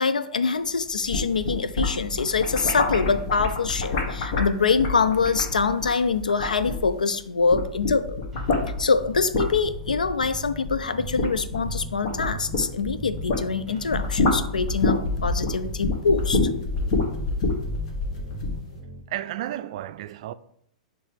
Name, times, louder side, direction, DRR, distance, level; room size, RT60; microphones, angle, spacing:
voice 1, 0.0-8.2 8.8-16.5, left 5 dB, 85° left, 0.5 m, -24 dB
sound 1, 0.9-7.1 7.4-13.5 13.8-18.6, left 3 dB, 55° left, 1.5 m, -27 dB
sound 2, 8.3-19.0, right 2 dB, 10° right, 1.2 m, -41 dB
voice 2, 19.1-20.3, right 13 dB, 55° right, 0.4 m, -32 dB
8.8 x 3.3 x 3.5 m
hypercardioid pair, 110°, 4 cm